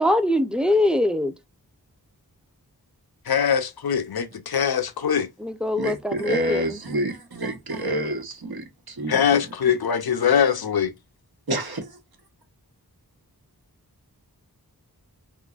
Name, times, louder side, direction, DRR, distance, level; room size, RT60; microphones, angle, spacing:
voice 1, 0.0-1.3 5.4-6.8, left 1 dB, ahead, 0.6 m, -23 dB
voice 2, 3.3-5.3 9.1-10.9, left 8 dB, 65° left, 0.7 m, -22 dB
voice 3, 5.8-9.2 11.5-11.9, right 1 dB, 65° right, 1.1 m, -28 dB
3.7 x 3.0 x 2.4 m
wide cardioid pair, 40°, 39 cm